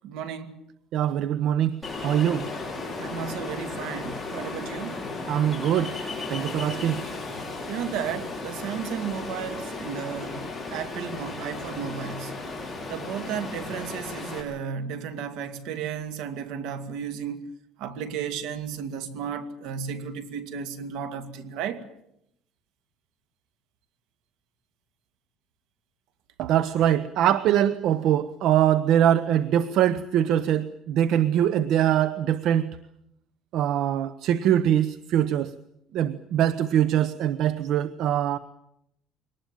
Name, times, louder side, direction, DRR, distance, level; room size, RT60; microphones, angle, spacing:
voice 1, 0.0-0.6 3.0-4.9 7.7-10.4 10.7-12.3 12.9-17.4 17.8-21.8, right 7 dB, 75° right, 2.4 m, -33 dB
voice 2, 0.9-2.4 5.3-5.9 6.3-7.0 26.4-32.7 33.5-35.5 35.9-38.4, right 10 dB, 60° right, 0.9 m, -23 dB
Ocean, 1.8-14.4, left 3 dB, 5° left, 5.7 m, -35 dB
23.5 x 19.0 x 9.0 m
cardioid pair, 145°, 0 cm